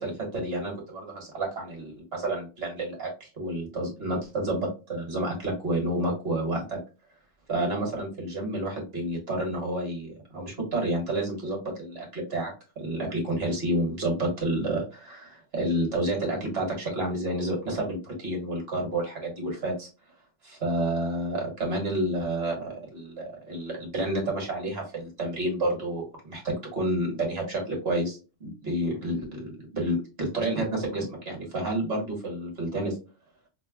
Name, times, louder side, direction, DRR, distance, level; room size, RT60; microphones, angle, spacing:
voice 1, 0.0-6.8 7.5-19.9 20.4-33.0, right 1 dB, 55° right, 0 dB, 1.5 m, -30 dB
5.0 x 2.1 x 2.2 m, 0.32 s
omnidirectional pair, 1.3 m